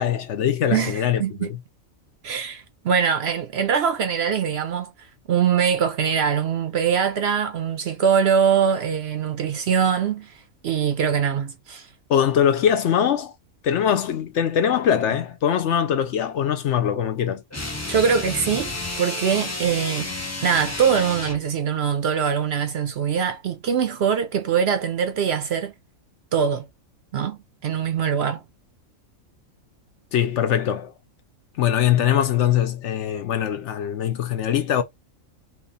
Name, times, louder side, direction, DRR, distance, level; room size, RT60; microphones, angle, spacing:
voice 1, 0.0-1.5 12.1-13.3 13.6-17.4 30.1-30.9 31.6-34.8, left 9 dB, 65° left, 0.9 m, -22 dB
voice 2, 0.7-1.5 2.2-4.9 5.3-11.9 17.9-20.1 20.4-25.7 26.3-26.7 27.1-28.4, right 7 dB, 60° right, 0.7 m, -23 dB
sound 1, 17.5-21.5, left 2 dB, 20° left, 0.4 m, -31 dB
3.0 x 2.7 x 3.9 m
omnidirectional pair, 1.4 m